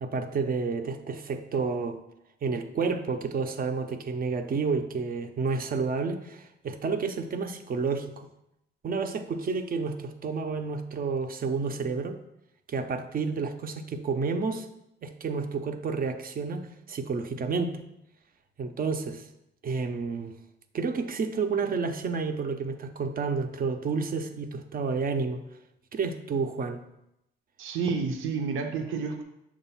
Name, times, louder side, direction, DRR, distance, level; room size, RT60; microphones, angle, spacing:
voice 1, 0.0-2.0 2.4-8.3 8.8-12.2 12.7-14.7 15.0-17.8 18.6-19.3 19.6-20.3 20.7-25.4 25.9-26.8, right 4 dB, 45° right, 6 dB, 0.7 m, -30 dB
voice 2, 27.6-29.2, right 5 dB, 85° right, 4 dB, 0.8 m, -30 dB
6.9 x 2.6 x 5.6 m, 0.84 s
cardioid pair, 90°, 20 cm